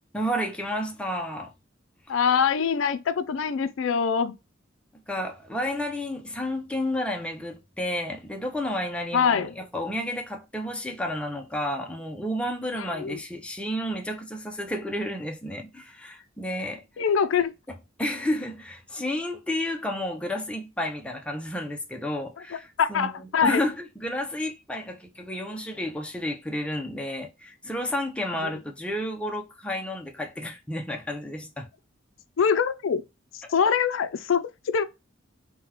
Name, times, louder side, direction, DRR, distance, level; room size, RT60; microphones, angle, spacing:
voice 1, 0.1-1.5 5.1-16.8 18.0-23.1 23.4-31.7, left 1 dB, 5° left, 0.5 m, -31 dB
voice 2, 2.1-4.4 9.1-9.5 12.7-13.2 17.0-17.5 22.5-23.6 28.4-28.5 32.4-33.0 33.3-34.8, left 6 dB, 80° left, 0.4 m, -24 dB
3.7 x 2.2 x 2.9 m
head